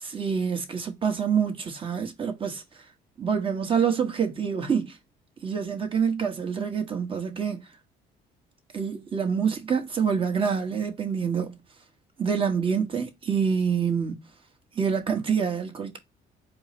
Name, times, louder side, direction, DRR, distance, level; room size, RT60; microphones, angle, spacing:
voice 1, 0.0-2.6 3.2-5.0 5.4-7.6 8.7-11.6 12.2-14.2 14.7-16.0, right 6 dB, 30° right, 1.2 m, -26 dB
4.5 x 2.1 x 4.1 m
cardioid pair, 110°, 17 cm